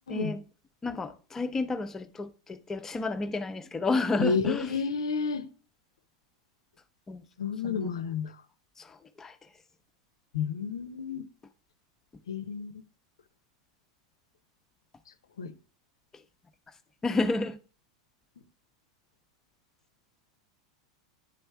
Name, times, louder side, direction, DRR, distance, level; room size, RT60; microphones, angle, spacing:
voice 1, 0.1-0.4 0.8-4.8 7.1-7.2 7.6-8.0 8.8-9.4 17.0-17.6, left 3 dB, 15° left, 0.7 m, -31 dB
voice 2, 4.2-5.5 7.4-8.3 10.3-11.2 12.3-12.7 15.4-15.5, left 5 dB, 75° left, 0.6 m, -30 dB
9.9 x 3.3 x 4.5 m
hypercardioid pair, 90°, 3 cm